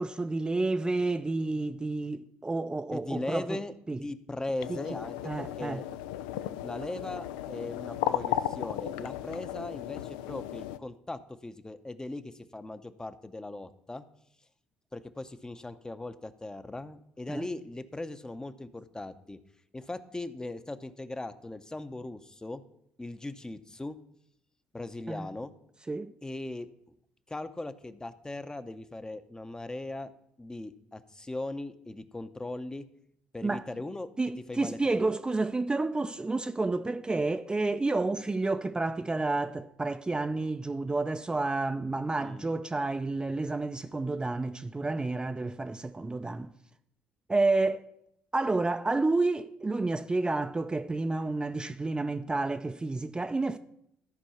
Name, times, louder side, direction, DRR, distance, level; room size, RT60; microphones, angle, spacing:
voice 1, 0.0-3.6 3.9-4.0 4.7-4.8 5.2-5.8 17.3-17.5 25.1-25.3 25.9-26.1 33.4-33.7 34.2-46.5 47.3-47.9 48.3-53.6, right 3 dB, 20° right, 0.5 m, -30 dB
voice 2, 2.9-5.8 6.6-14.0 14.9-19.4 19.7-22.6 23.0-24.0 24.7-25.5 26.2-26.7 27.3-30.1 30.4-32.8 33.3-34.1 34.5-35.0 42.2-42.5, left 2 dB, 15° left, 0.7 m, -39 dB
sound 1, 4.6-10.8, left 12 dB, 85° left, 0.4 m, -35 dB
13.5 x 4.5 x 5.7 m
hypercardioid pair, 65°, 5 cm